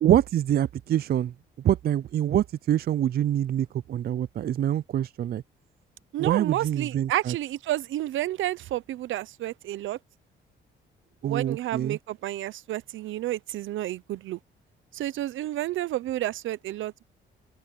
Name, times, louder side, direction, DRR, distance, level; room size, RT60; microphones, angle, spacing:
voice 1, 0.0-1.3 1.6-5.4 6.2-7.3 11.2-12.0, right 11 dB, 50° right, 0.4 m, -25 dB
voice 2, 6.1-10.0 11.2-14.4 14.9-17.0, right 14 dB, 80° right, 0.8 m, -30 dB
cardioid pair, 90°, 20 cm